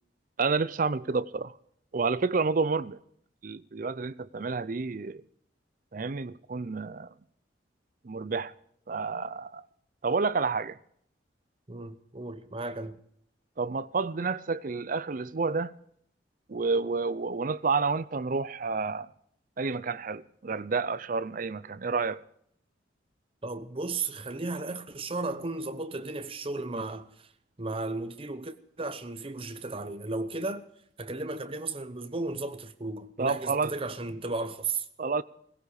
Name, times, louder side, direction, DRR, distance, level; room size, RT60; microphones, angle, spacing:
voice 1, 0.4-1.5 1.9-3.0 3.4-5.2 5.9-7.1 8.0-8.5 8.9-9.6 10.0-10.8 13.6-15.7 16.5-19.1 19.6-22.2 33.2-33.7 35.0-35.2, right 4 dB, 45° right, 0.5 m, -29 dB
voice 2, 11.7-13.0 23.4-27.1 27.6-30.7 31.0-34.9, right 3 dB, 30° right, 0.9 m, -34 dB
17.5 x 16.5 x 4.9 m
head